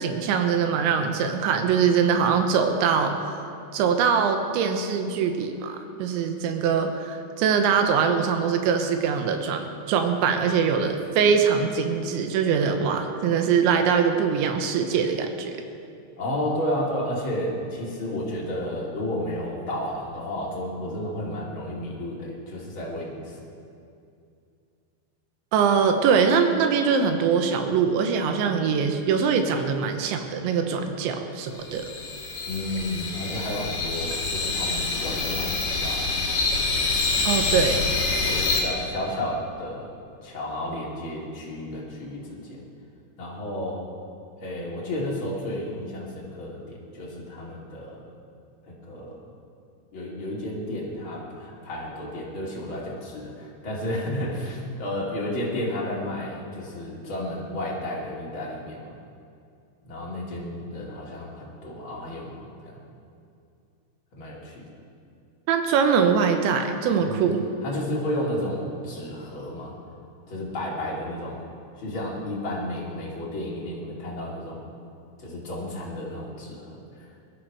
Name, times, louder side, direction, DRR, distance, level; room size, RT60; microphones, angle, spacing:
voice 1, 0.0-3.2 3.7-15.6 25.5-31.9 37.3-37.8 65.5-67.4, right 6 dB, 85° right, 6 dB, 3.5 m, -23 dB
voice 2, 16.2-23.4 32.5-36.1 38.3-39.9 40.2-42.6 43.2-43.8 44.4-48.0 48.7-49.3 49.9-58.9 59.8-62.8 64.2-64.5 67.0-67.3 67.6-69.8 70.3-71.4 71.8-74.6 75.2-76.7, left 1 dB, 35° left, -4 dB, 2.7 m, -32 dB
sound 1, 31.6-38.6, left 3 dB, 55° left, 3.0 m, -26 dB
21.0 x 13.0 x 4.9 m, 2.5 s
omnidirectional pair, 5.2 m